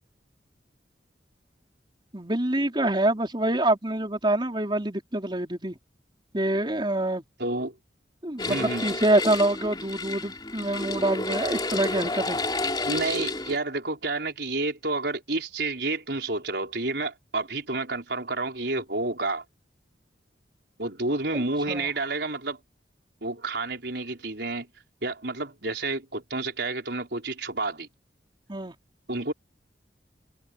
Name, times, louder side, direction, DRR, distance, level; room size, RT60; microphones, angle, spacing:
voice 1, 2.1-5.7 6.3-7.2 8.2-12.4 21.3-21.9 28.5-28.7, right 1 dB, 25° right, 4.3 m, -26 dB
voice 2, 7.4-7.8 8.4-9.0 12.9-19.4 20.8-22.6 23.2-24.7 25.0-27.9 29.1-29.3, right 2 dB, 70° right, 4.6 m, -30 dB
sound 1, 8.4-13.6, left 2 dB, 25° left, 3.3 m, -30 dB
head